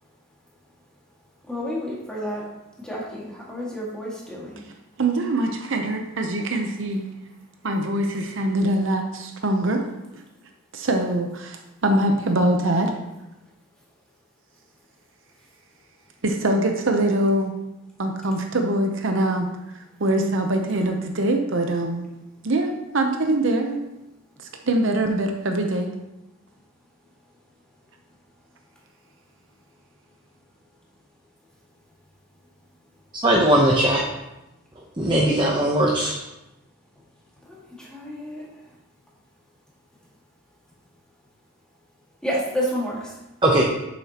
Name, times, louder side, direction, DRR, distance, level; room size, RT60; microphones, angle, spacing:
voice 1, 1.5-2.4 2.8-4.6 35.1-35.2 37.5-38.4 42.2-43.1, equal, 5° left, -6 dB, 1.9 m, -30 dB
voice 2, 5.0-7.1 7.6-9.8 10.1-10.2 10.7-12.9 16.2-17.5 18.0-19.5 20.0-22.1 22.4-23.8 24.7-25.9, right 1 dB, 60° right, 4 dB, 0.8 m, -23 dB
voice 3, 33.2-34.0 35.0-36.1 43.4-43.6, right 1 dB, 20° right, -3 dB, 0.8 m, -19 dB
8.8 x 7.2 x 2.9 m, 0.96 s
head